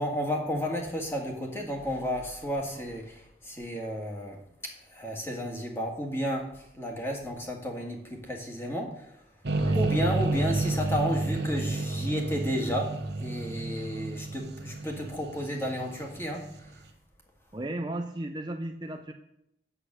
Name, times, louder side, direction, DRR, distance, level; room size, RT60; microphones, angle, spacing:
voice 1, 0.0-9.1 9.7-12.9 13.2-16.5, equal, 15° left, 1 dB, 1.8 m, -32 dB
sound 1, 9.4-16.6, right 2 dB, 75° right, 1.1 m, -30 dB
voice 2, 17.5-19.1, right 1 dB, 25° right, 5 dB, 0.5 m, -35 dB
8.3 x 7.9 x 6.3 m, 0.77 s
head